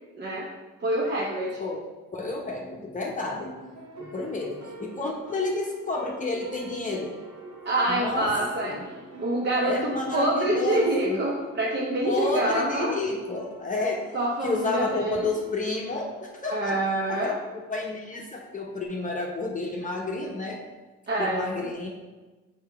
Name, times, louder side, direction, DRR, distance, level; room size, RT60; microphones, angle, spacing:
voice 1, 0.1-0.5 0.8-1.6 7.6-8.8 9.2-12.9 14.1-15.3 16.5-17.3 21.1-21.7, right 1 dB, 35° right, -3 dB, 0.9 m, -26 dB
voice 2, 2.1-3.6 4.0-7.1 7.9-8.3 8.6-8.9 9.6-11.2 12.0-14.1 14.4-16.8 17.1-17.3 17.7-20.6 21.2-21.9, left 3 dB, 25° left, -1 dB, 0.9 m, -30 dB
sound 1, 3.3-18.9, right 1 dB, 60° right, 1.5 m, -46 dB
6.4 x 4.6 x 3.5 m, 1.2 s
cardioid pair, 90°, 30 cm